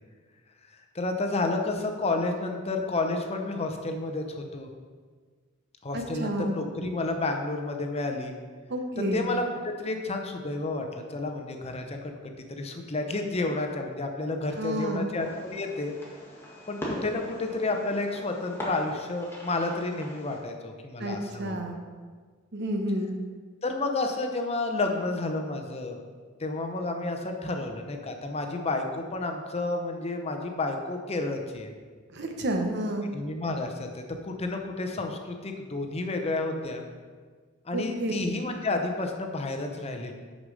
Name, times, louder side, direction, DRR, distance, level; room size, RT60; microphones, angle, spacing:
voice 1, 0.9-4.7 5.8-8.3 9.0-12.1 12.5-15.9 16.7-21.6 23.6-26.0 26.4-31.7 33.1-36.8 37.7-40.1, left 2 dB, 30° left, 4 dB, 0.7 m, -31 dB
voice 2, 5.9-6.6 8.7-9.2 14.6-15.1 21.0-21.8 22.5-23.1 32.1-33.1 37.7-38.1, right 1 dB, 55° right, 4 dB, 0.9 m, -30 dB
Fireworks, 15.2-20.4, equal, 10° left, 1.7 m, -40 dB
6.5 x 5.3 x 6.3 m, 1.5 s
head